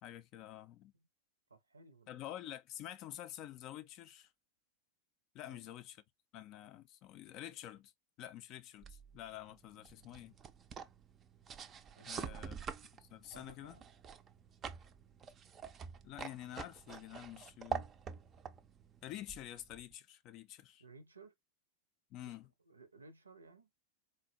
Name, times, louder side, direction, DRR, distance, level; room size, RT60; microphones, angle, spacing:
voice 1, 0.0-0.9 2.1-4.3 5.3-6.0 6.3-7.9 8.2-10.4 12.1-12.6 13.0-13.8 16.0-17.9 19.0-20.8 22.1-22.5, left 12 dB, 40° left, 0.4 m, -48 dB
voice 2, 1.5-2.2 5.4-5.7 11.9-12.5 13.3-13.9 20.8-21.3 22.2-22.4 22.6-23.7, right 3 dB, 75° right, 0.6 m, -59 dB
sound 1, 8.8-19.9, right 7 dB, 25° right, 0.4 m, -47 dB
4.0 x 2.1 x 2.6 m
figure-of-eight pair, 90°, 0 cm